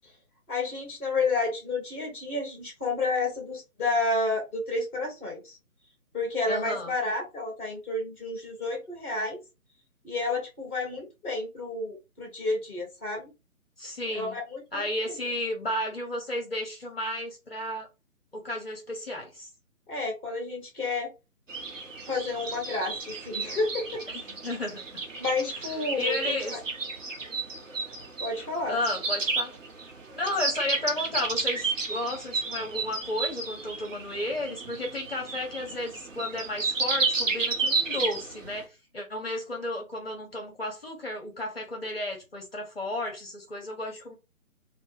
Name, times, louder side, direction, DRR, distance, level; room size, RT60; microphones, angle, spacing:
voice 1, 0.5-5.6 6.1-9.4 10.0-13.3 14.1-14.9 19.9-21.1 22.0-24.0 25.2-26.6 28.2-28.8, left 3 dB, 10° left, 0.7 m, -30 dB
voice 2, 6.5-6.9 13.8-14.4 14.7-17.9 18.3-19.5 24.1-25.0 25.5-25.6 26.0-26.5 28.7-29.5 30.1-44.2, left 1 dB, 45° left, 0.7 m, -33 dB
sound 1, 21.5-38.6, right 4 dB, 60° right, 0.8 m, -32 dB
2.1 x 2.0 x 3.1 m
figure-of-eight pair, 145°, 43 cm